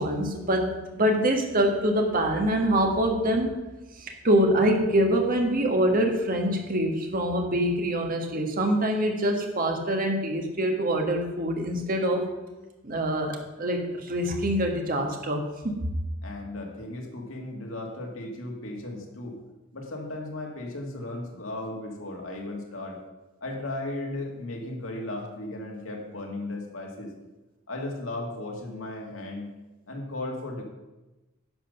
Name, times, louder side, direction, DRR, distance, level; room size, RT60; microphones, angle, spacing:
voice 1, 0.0-3.6 4.0-12.3 12.8-15.9, right 1 dB, 45° right, 3 dB, 1.6 m, -25 dB
voice 2, 16.2-19.4 19.7-23.0 23.4-27.1 27.7-29.5 29.9-30.6, left 2 dB, 75° left, 0 dB, 2.2 m, -36 dB
10.5 x 5.1 x 6.8 m, 1.1 s
head